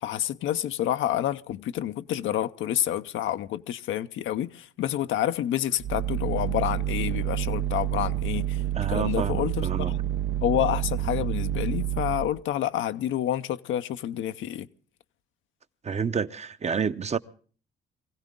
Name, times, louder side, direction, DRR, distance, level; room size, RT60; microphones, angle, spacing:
voice 1, 0.0-8.6 8.9-10.0 10.4-14.7, left 12 dB, 80° left, 0.7 m, -28 dB
sound 1, 5.8-12.4, right 12 dB, 70° right, 0.7 m, -28 dB
voice 2, 8.7-9.9 15.8-17.2, right 6 dB, 35° right, 0.7 m, -29 dB
23.5 x 16.0 x 3.7 m
cardioid pair, 90°, 20 cm